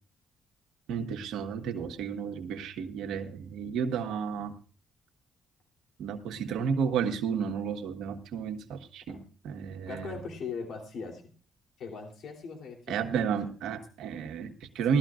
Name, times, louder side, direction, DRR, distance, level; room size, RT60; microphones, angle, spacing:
voice 1, 0.9-4.5 6.0-9.2 9.4-10.1 12.9-15.0, right 6 dB, 85° right, 4 dB, 1.3 m, -32 dB
voice 2, 9.9-11.2 11.8-13.5, left 5 dB, 70° left, 2 dB, 3.2 m, -40 dB
18.5 x 13.0 x 2.5 m, 0.37 s
cardioid pair, 90°, 0 cm